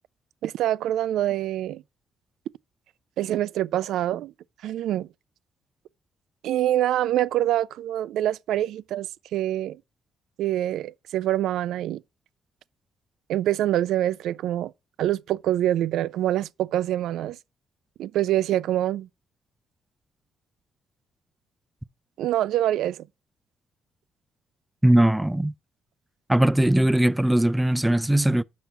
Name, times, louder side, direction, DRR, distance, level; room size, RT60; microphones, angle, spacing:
voice 1, 0.4-1.8 3.2-4.3 4.6-5.1 6.4-9.8 10.4-12.0 13.3-14.7 15.0-17.4 18.0-19.1 22.2-23.1, right 12 dB, 80° right, 0.3 m, -25 dB
voice 2, 24.8-25.5 26.3-28.4, right 1 dB, 5° right, 0.3 m, -20 dB
6.1 x 5.6 x 5.6 m
cardioid pair, 90°, 0 cm